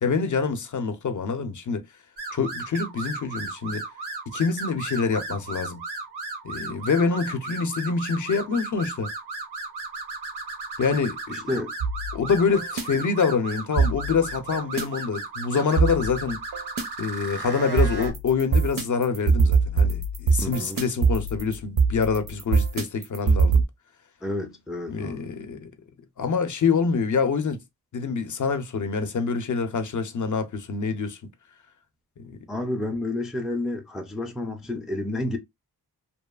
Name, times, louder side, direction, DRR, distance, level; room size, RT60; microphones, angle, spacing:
voice 1, 0.0-1.8 2.3-3.8 4.3-5.8 6.4-9.1 10.8-11.4 12.1-16.4 17.0-23.6 24.9-25.7 26.2-27.6 27.9-31.2 32.2-32.4, left 5 dB, 50° left, 0.5 m, -26 dB
sound 1, 2.2-18.1, right 3 dB, 85° right, 0.9 m, -35 dB
voice 2, 11.3-11.7 20.4-20.8 24.2-25.2 32.5-35.4, left 2 dB, ahead, 0.3 m, -30 dB
sound 2, 11.8-12.8 13.8-14.8 15.8-16.8 17.8-23.6, right 4 dB, 60° right, 0.6 m, -23 dB
2.8 x 2.3 x 2.2 m
wide cardioid pair, 135°, 38 cm